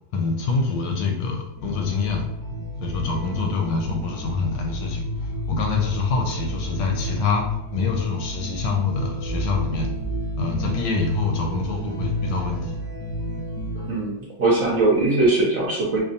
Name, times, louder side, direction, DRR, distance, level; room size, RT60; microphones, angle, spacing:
voice 1, 0.1-2.3 2.8-5.0 5.5-7.4 7.7-9.9 10.4-12.7, left 4 dB, 75° left, 2 dB, 1.2 m, -25 dB
sound 1, 1.6-14.0, equal, 5° left, 0.9 m, -30 dB
voice 2, 13.9-16.0, right 2 dB, 60° right, -3 dB, 0.9 m, -20 dB
5.1 x 2.3 x 2.7 m, 0.88 s
omnidirectional pair, 2.1 m